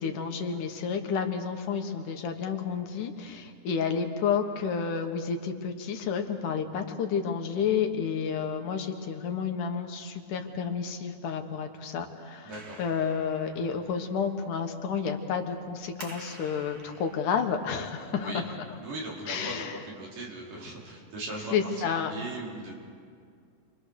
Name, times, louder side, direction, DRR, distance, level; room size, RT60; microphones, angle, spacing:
voice 1, 0.0-18.6 19.3-19.8 21.5-22.1, left 6 dB, 75° left, 5 dB, 3.0 m, -30 dB
voice 2, 12.4-12.8 18.1-18.4 18.8-19.6 19.8-22.7, right 2 dB, 85° right, -4 dB, 6.4 m, -39 dB
Clapping, 12.5-19.2, right 2 dB, 35° right, 2.1 m, -51 dB
29.0 x 24.0 x 6.6 m, 2.2 s
omnidirectional pair, 3.7 m